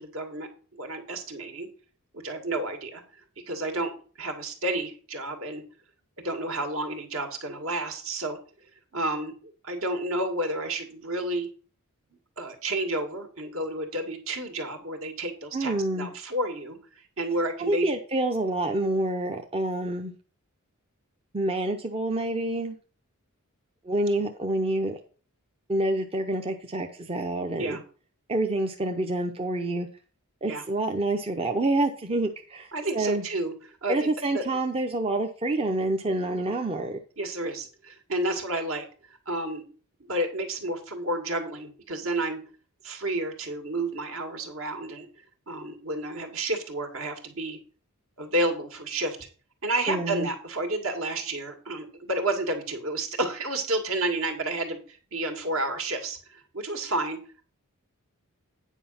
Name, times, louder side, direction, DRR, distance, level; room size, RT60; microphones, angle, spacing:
voice 1, 0.0-1.7 2.1-3.0 3.5-3.9 4.2-5.6 6.2-8.4 8.9-11.5 12.4-17.9 27.6-27.8 30.5-30.6 32.7-33.5 33.8-34.4 37.2-38.9 39.3-39.6 40.0-42.4 42.8-45.1 45.5-47.6 48.2-49.2 49.6-57.2, right 1 dB, 65° right, 4 dB, 2.0 m, -31 dB
voice 2, 15.5-16.1 17.6-20.1 21.3-22.8 23.8-25.0 25.7-27.8 28.3-29.9 30.4-33.2 33.9-37.0 49.9-50.3, right 2 dB, 25° right, 4 dB, 0.7 m, -27 dB
9.2 x 5.0 x 5.7 m, 0.39 s
head